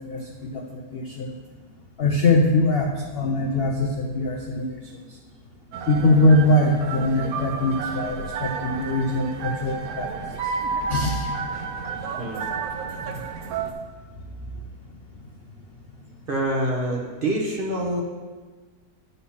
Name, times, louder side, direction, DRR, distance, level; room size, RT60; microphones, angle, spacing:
voice 1, 0.1-1.3 2.0-4.7 5.9-10.1 10.4-10.5 10.9-11.2, left 2 dB, 60° left, 2 dB, 0.6 m, -22 dB
sound 1, 5.7-13.7, right 5 dB, 70° right, 1.1 m, -31 dB
voice 2, 12.2-12.5 16.3-18.0, right 1 dB, 40° right, -2 dB, 1.0 m, -26 dB
9.7 x 4.0 x 5.7 m, 1.4 s
omnidirectional pair, 1.7 m